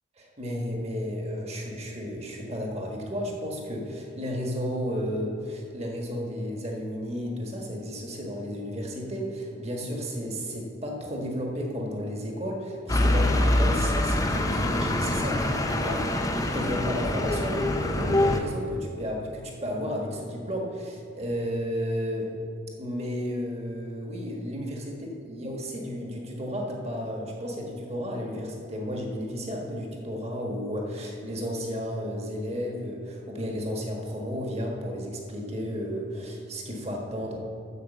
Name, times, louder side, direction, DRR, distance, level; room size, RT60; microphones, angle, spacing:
voice 1, 0.2-22.3 22.8-25.0 25.3-37.4, equal, 30° right, 0 dB, 1.4 m, -33 dB
sound 1, 12.9-18.4, left 1 dB, 15° left, 0.6 m, -25 dB
9.9 x 6.1 x 7.3 m, 2.5 s
head